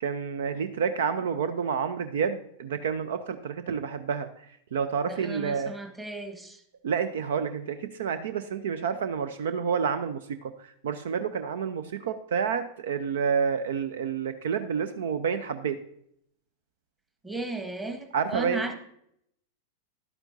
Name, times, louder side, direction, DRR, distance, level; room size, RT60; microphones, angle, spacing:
voice 1, 0.0-4.5 4.7-5.8 6.8-15.8 18.1-18.7, right 6 dB, 60° right, 12 dB, 0.5 m, -29 dB
voice 2, 5.1-6.6 17.2-18.7, right 2 dB, 10° right, 4 dB, 1.2 m, -35 dB
11.0 x 8.8 x 2.6 m, 0.71 s
figure-of-eight pair, 90°, 0 cm